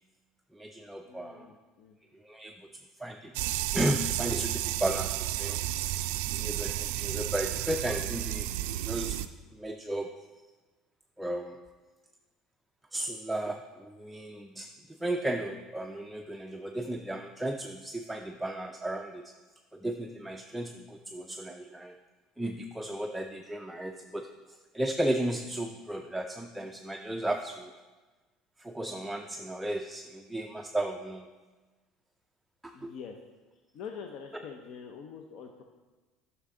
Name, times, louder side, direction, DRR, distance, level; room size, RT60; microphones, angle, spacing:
voice 1, 0.5-1.5 2.2-2.7 3.0-5.6 6.3-8.5 8.8-9.2 9.5-10.1 11.2-11.6 12.9-19.3 19.7-21.9 22.4-24.3 24.7-27.7 28.6-31.3 32.6-32.9, right 1 dB, 5° right, 3 dB, 0.4 m, -34 dB
voice 2, 1.0-2.0 32.7-33.1 33.7-35.6, left 6 dB, 60° left, 4 dB, 0.6 m, -44 dB
sound 1, 3.3-9.3, right 14 dB, 90° right, 0.3 m, -32 dB
9.5 x 5.9 x 3.8 m, 1.3 s
cardioid pair, 125°, 0 cm